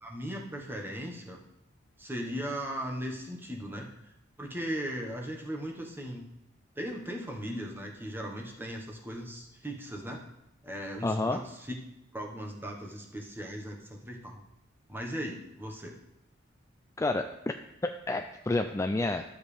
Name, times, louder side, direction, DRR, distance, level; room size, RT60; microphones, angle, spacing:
voice 1, 0.0-1.4 2.0-3.9 4.4-6.3 6.8-10.3 10.6-11.8 12.1-14.4 14.9-16.0, equal, 10° right, 0 dB, 1.3 m, -38 dB
voice 2, 11.0-11.4 17.0-17.2 17.8-19.2, left 2 dB, 15° left, 6 dB, 0.3 m, -29 dB
12.0 x 7.2 x 3.4 m, 0.88 s
head